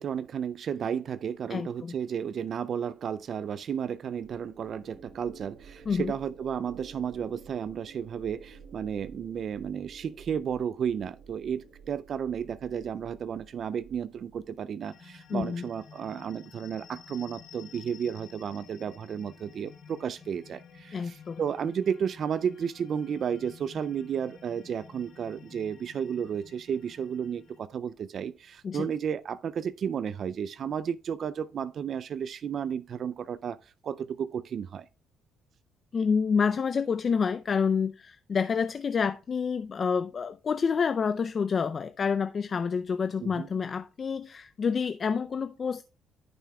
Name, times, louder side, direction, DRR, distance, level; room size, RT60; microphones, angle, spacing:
voice 1, 0.0-34.9 43.2-43.5, right 8 dB, 55° right, 0.3 m, -33 dB
voice 2, 1.5-1.9 5.9-6.1 15.3-15.6 20.9-21.4 28.6-28.9 35.9-45.8, left 6 dB, 45° left, 0.4 m, -28 dB
sound 1, 4.1-14.6, right 5 dB, 90° right, 2.2 m, -51 dB
sound 2, 14.8-27.6, left 6 dB, 65° left, 2.5 m, -52 dB
15.5 x 5.7 x 2.2 m
cardioid pair, 85°, 0 cm